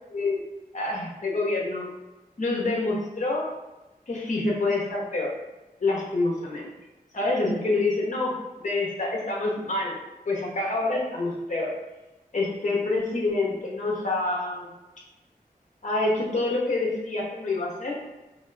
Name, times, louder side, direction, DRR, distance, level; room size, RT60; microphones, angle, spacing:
voice 1, 0.1-0.5 0.7-1.9 2.4-3.5 4.1-5.3 5.8-6.7 7.1-10.0 10.3-11.7 12.3-14.7 15.8-18.0, left 2 dB, 50° left, -3 dB, 1.0 m, -27 dB
3.9 x 3.0 x 2.2 m, 1.1 s
wide cardioid pair, 75°, 16 cm